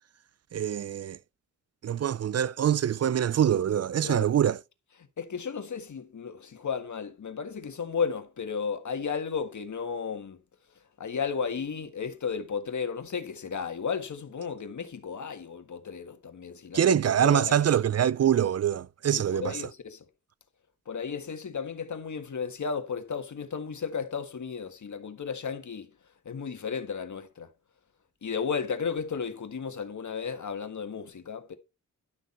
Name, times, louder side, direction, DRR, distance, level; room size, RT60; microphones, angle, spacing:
voice 1, 0.5-1.2 1.8-4.6 16.7-19.7, right 9 dB, 55° right, 0.4 m, -24 dB
voice 2, 5.2-10.4 11.0-17.5 19.1-20.0 20.9-25.9 26.3-27.5 28.2-31.6, left 6 dB, 70° left, 1.7 m, -34 dB
11.5 x 6.5 x 4.3 m
cardioid pair, 70°, 30 cm